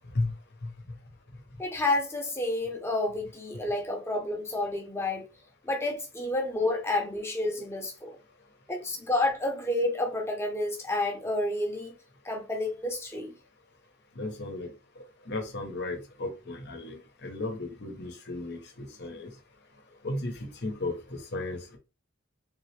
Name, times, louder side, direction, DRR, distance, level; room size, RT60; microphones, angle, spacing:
voice 1, 1.6-5.3 5.6-8.2 8.7-11.9 12.2-13.3, left 2 dB, 10° left, 1.0 m, -30 dB
voice 2, 14.1-14.7 15.3-19.3 20.0-21.8, left 2 dB, 55° left, 1.0 m, -35 dB
3.6 x 3.0 x 3.3 m
head